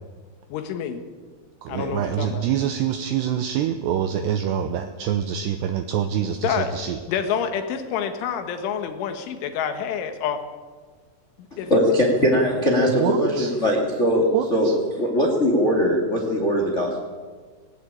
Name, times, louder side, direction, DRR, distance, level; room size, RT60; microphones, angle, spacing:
voice 1, 0.5-1.0 1.7-2.5 6.4-10.4 11.6-11.7, left 8 dB, 75° left, 8 dB, 3.9 m, -28 dB
voice 2, 1.6-7.0 12.9-13.6 14.3-14.8, right 9 dB, 75° right, 7 dB, 2.7 m, -26 dB
voice 3, 11.5-17.0, equal, 25° left, 0 dB, 1.6 m, -21 dB
18.5 x 18.5 x 8.7 m, 1.5 s
omnidirectional pair, 5.7 m